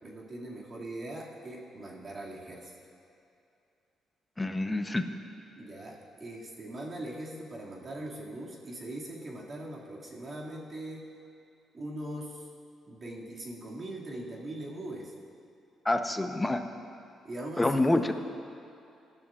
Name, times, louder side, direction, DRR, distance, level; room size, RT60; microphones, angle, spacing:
voice 1, 0.0-2.8 5.6-11.0 11.7-12.5 12.9-15.1 17.2-18.0, right 1 dB, 40° right, -4 dB, 2.3 m, -41 dB
voice 2, 4.4-5.0 15.8-16.6 17.6-18.1, left 2 dB, 15° left, 6 dB, 0.8 m, -27 dB
20.5 x 12.5 x 2.5 m, 2.6 s
cardioid pair, 90°, 0 cm